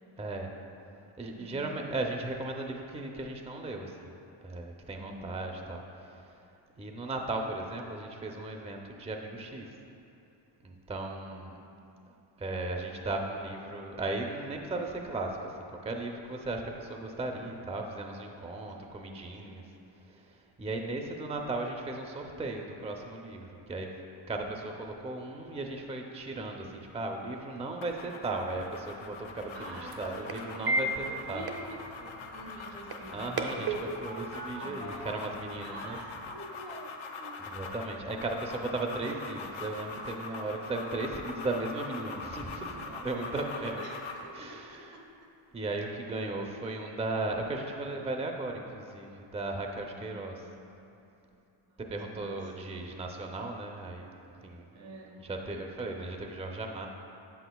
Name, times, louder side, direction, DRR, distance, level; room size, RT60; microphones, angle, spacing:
voice 1, 0.2-0.5 1.2-4.1 4.4-6.3 6.8-9.7 10.6-11.5 12.4-19.6 20.0-24.0 24.3-31.5 33.1-36.0 37.4-43.8 44.3-44.8 45.5-50.4 51.9-54.1 54.4-54.7 55.2-56.9, right 2 dB, 15° right, 2 dB, 0.5 m, -36 dB
voice 2, 1.3-1.8 4.9-5.5 11.3-12.0 18.4-18.8 19.3-19.5 29.5-33.5 34.6-35.3 35.6-36.9 37.2-37.4 42.8-45.0 49.9-51.0 51.7-52.7 54.7-55.3, right 1 dB, 80° right, -1 dB, 1.4 m, -48 dB
sound 1, 27.8-44.3, left 4 dB, 70° left, 0.7 m, -43 dB
sound 2, 28.5-36.4, right 2 dB, 50° right, 0.8 m, -37 dB
7.9 x 7.6 x 2.3 m, 2.8 s
cardioid pair, 75°, 48 cm